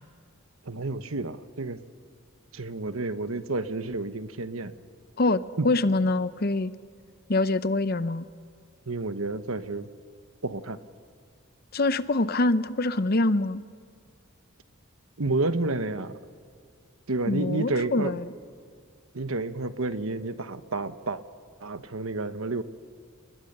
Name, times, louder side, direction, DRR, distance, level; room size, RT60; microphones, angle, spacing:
voice 1, 0.6-1.8 2.5-4.7 5.6-5.7 8.9-9.9 10.4-10.8 15.2-16.1 17.1-18.1 19.1-21.2 21.6-22.6, right 2 dB, 85° right, 11 dB, 1.2 m, -30 dB
voice 2, 5.2-6.7 7.3-8.2 11.7-13.6 17.3-18.3, left 2 dB, 45° left, 13 dB, 0.8 m, -25 dB
30.0 x 20.5 x 6.8 m, 2.1 s
head